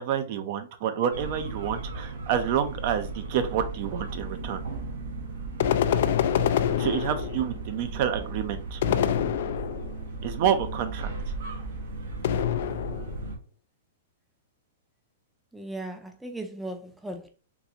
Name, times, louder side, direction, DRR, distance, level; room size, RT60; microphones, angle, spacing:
voice 1, 0.0-4.6 6.8-8.8 10.2-11.1, right 9 dB, 50° right, 0.6 m, -28 dB
sound 1, 1.1-13.4, right 3 dB, 70° right, 0.9 m, -36 dB
sound 2, 5.6-7.6 8.8-10.0 12.2-13.2, left 9 dB, 65° left, 0.3 m, -26 dB
voice 2, 8.8-9.3 15.5-17.3, right 1 dB, 5° right, 0.5 m, -38 dB
3.8 x 2.4 x 2.8 m
hypercardioid pair, 130°, 0 cm